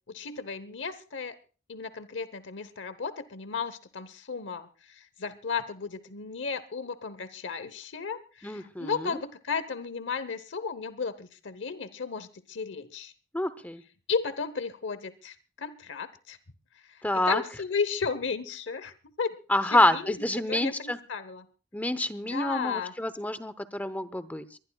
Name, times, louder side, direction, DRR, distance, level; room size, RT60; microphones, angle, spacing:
voice 1, 0.1-1.4 1.7-13.1 14.1-16.4 16.8-19.4 19.7-20.1 20.5-21.5 22.3-22.9, left 5 dB, 80° left, 14 dB, 0.9 m, -34 dB
voice 2, 8.4-9.1 13.3-13.8 17.0-17.4 19.5-21.0 21.7-24.6, left 1 dB, 10° left, 13 dB, 0.8 m, -27 dB
23.5 x 19.5 x 2.3 m, 0.36 s
head